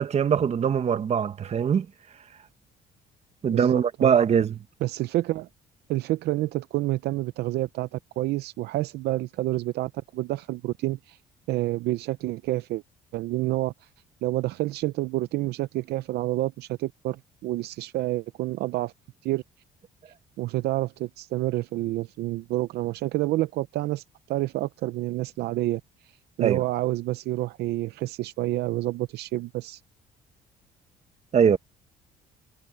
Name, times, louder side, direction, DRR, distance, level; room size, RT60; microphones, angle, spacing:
voice 1, 0.0-1.9 3.4-4.6 26.4-26.6 31.3-31.6, right 7 dB, 40° right, 1.3 m, -22 dB
voice 2, 3.5-4.2 4.8-5.5 5.9-11.2 11.5-12.8 13.1-13.7 14.2-18.9 19.2-19.4 20.4-25.8 26.4-29.8, right 17 dB, 75° right, 0.6 m, -28 dB
cardioid pair, 110°, 17 cm